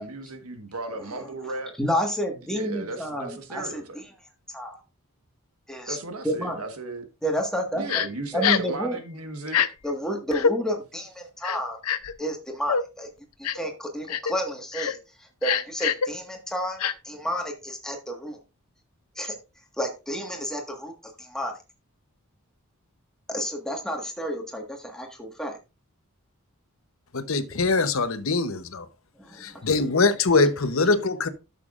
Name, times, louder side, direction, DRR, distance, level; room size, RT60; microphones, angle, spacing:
voice 1, 0.0-1.8 2.5-4.0 5.9-7.0 7.7-9.6, right 2 dB, 85° right, 1.4 m, -35 dB
voice 2, 1.8-3.8 4.5-4.8 5.7-6.0 6.2-6.6 7.2-8.0 8.3-9.0 9.8-11.8 12.2-13.1 13.4-15.0 15.4-18.4 19.1-19.4 19.8-21.6 23.3-25.6 29.2-29.6, equal, 5° left, 1.6 m, -30 dB
Crying sobbing, 7.9-8.1 8.4-8.7 9.5-9.7 10.3-10.5 11.4-12.1 12.7-12.8 13.4-13.7 14.1-14.3 14.7-14.9 15.4-16.1 16.8-16.9, left 7 dB, 90° left, 0.6 m, -24 dB
voice 3, 27.1-28.9 29.4-31.3, left 3 dB, 65° left, 0.9 m, -23 dB
12.0 x 6.8 x 2.5 m
head